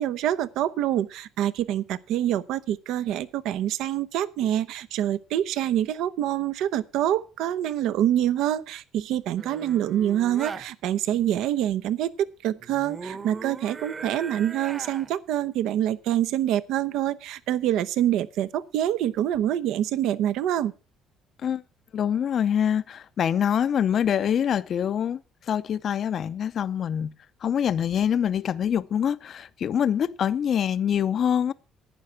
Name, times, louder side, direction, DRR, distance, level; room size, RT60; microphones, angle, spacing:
voice 1, 0.0-20.7, right 11 dB, 80° right, 0.7 m, -26 dB
sound 1, 9.4-10.7 12.6-15.2 19.2-19.4, right 4 dB, 30° right, 1.0 m, -39 dB
voice 2, 21.9-25.2 25.5-27.1 27.4-31.5, left 8 dB, 45° left, 0.5 m, -25 dB
11.5 x 9.5 x 5.7 m
cardioid pair, 125°, 0 cm